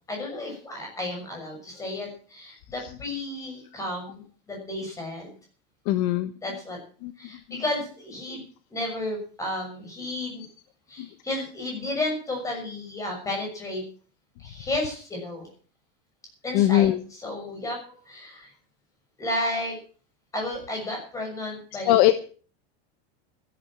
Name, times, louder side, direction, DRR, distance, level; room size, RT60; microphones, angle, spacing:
voice 1, 0.1-4.2 4.5-5.3 6.4-6.8 7.2-8.4 8.7-10.4 10.9-13.8 14.4-15.5 16.4-18.5 19.2-19.7 20.3-21.9, left 1 dB, 10° left, 2 dB, 6.4 m, -32 dB
voice 2, 5.9-6.6 7.0-7.1 7.5-7.6 16.5-17.0 21.8-22.2, left 14 dB, 45° left, 13 dB, 0.9 m, -22 dB
14.0 x 11.5 x 7.4 m, 0.43 s
supercardioid pair, 175°, 30 cm